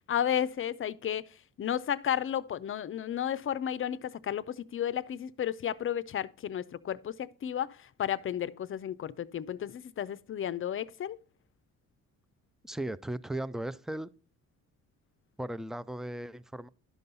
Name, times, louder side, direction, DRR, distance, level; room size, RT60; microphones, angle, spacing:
voice 1, 0.1-1.2 1.6-11.2, left 9 dB, 45° left, 0.6 m, -33 dB
voice 2, 12.6-14.1 15.4-16.7, right 1 dB, ahead, 0.4 m, -36 dB
11.5 x 5.4 x 4.0 m
cardioid pair, 90°, 30 cm